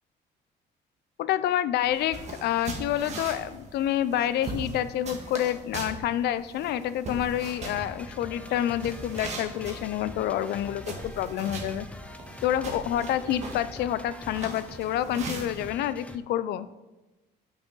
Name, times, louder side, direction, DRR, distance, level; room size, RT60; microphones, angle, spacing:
voice 1, 1.2-11.9 12.4-16.7, left 11 dB, 70° left, 15 dB, 0.4 m, -28 dB
sound 1, 1.8-15.7, right 3 dB, 40° right, 1.7 m, -40 dB
sound 2, 7.4-16.2, left 1 dB, 5° left, 0.4 m, -44 dB
9.0 x 6.0 x 3.9 m, 1.1 s
cardioid pair, 145°, 17 cm